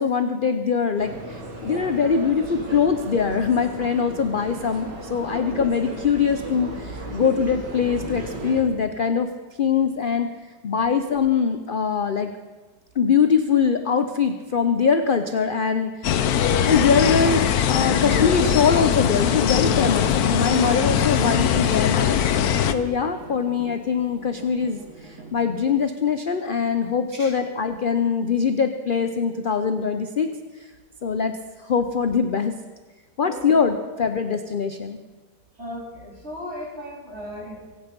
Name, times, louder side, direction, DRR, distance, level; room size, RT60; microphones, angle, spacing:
voice 1, 0.0-9.3 9.6-10.3 10.6-12.3 13.0-16.3 16.6-30.3 31.0-31.3 31.6-32.5 33.2-35.0, left 6 dB, 50° left, 8 dB, 0.6 m, -22 dB
sound 1, 0.9-8.6, right 1 dB, 90° right, 3.0 m, -35 dB
sound 2, 16.0-22.7, left 9 dB, 65° left, 1.2 m, -21 dB
sound 3, 20.4-25.4, right 4 dB, 70° right, 2.6 m, -44 dB
voice 2, 35.6-37.6, equal, 40° right, -3 dB, 4.4 m, -36 dB
24.5 x 8.8 x 5.3 m, 1.3 s
omnidirectional pair, 1.8 m